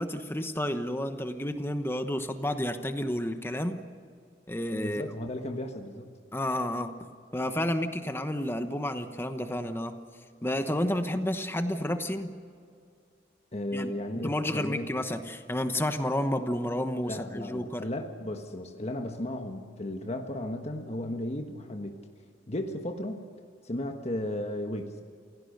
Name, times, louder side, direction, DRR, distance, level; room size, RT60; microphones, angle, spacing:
voice 1, 0.0-3.8 4.5-5.0 6.3-6.9 7.3-10.0 10.4-12.3 13.7-17.8, left 1 dB, 10° left, 8 dB, 1.0 m, -31 dB
voice 2, 4.8-6.1 13.5-14.9 17.0-22.0 22.5-23.2 23.6-25.0, left 1 dB, 35° left, 4 dB, 1.3 m, -35 dB
28.5 x 17.0 x 6.6 m, 2.2 s
head